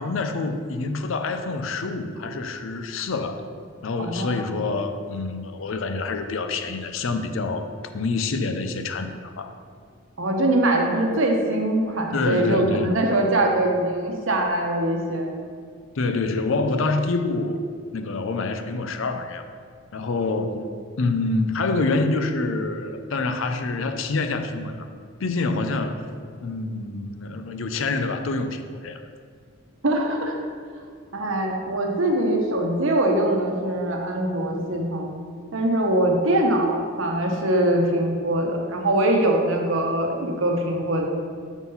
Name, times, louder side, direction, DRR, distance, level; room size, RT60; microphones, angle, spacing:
voice 1, 0.0-3.4 3.8-9.5 12.1-13.0 15.9-17.6 17.9-19.5 19.9-20.7 21.0-24.9 25.2-26.1 26.4-29.0, left 3 dB, 70° left, 8 dB, 0.5 m, -26 dB
voice 2, 4.0-4.6 10.2-15.4 29.8-30.3 31.1-35.1 35.5-41.0, right 1 dB, 70° right, 1 dB, 0.9 m, -22 dB
6.1 x 3.9 x 5.4 m, 2.1 s
head